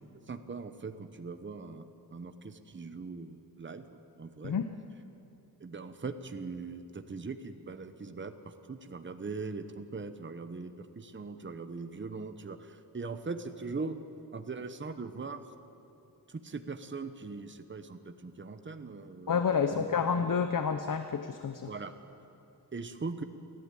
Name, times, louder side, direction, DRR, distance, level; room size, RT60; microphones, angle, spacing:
voice 1, 0.3-4.6 5.6-14.0 14.3-15.5 16.3-19.4 19.7-20.1 21.6-21.9 22.7-23.2, right 4 dB, 30° right, 9 dB, 0.9 m, -41 dB
voice 2, 19.3-21.7, left 6 dB, 50° left, 9 dB, 0.8 m, -29 dB
29.5 x 11.5 x 9.0 m, 2.8 s
wide cardioid pair, 135°, 40 cm